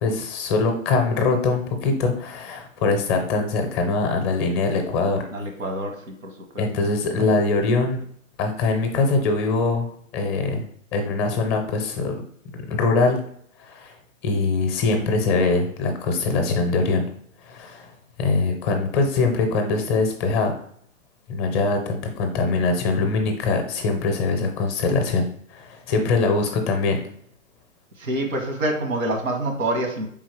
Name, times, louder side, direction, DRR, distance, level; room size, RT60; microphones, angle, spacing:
voice 1, 0.0-5.2 6.6-8.0 8.4-9.9 10.1-10.6 10.9-12.2 12.7-13.2 13.7-13.9 14.2-17.1 17.4-17.9 18.2-20.5 21.3-27.0, left 3 dB, 20° left, 4 dB, 0.5 m, -22 dB
voice 2, 5.3-6.6 28.0-30.1, right 1 dB, 90° right, 4 dB, 1.2 m, -26 dB
4.2 x 3.7 x 3.2 m, 0.64 s
hypercardioid pair, 135°, 39 cm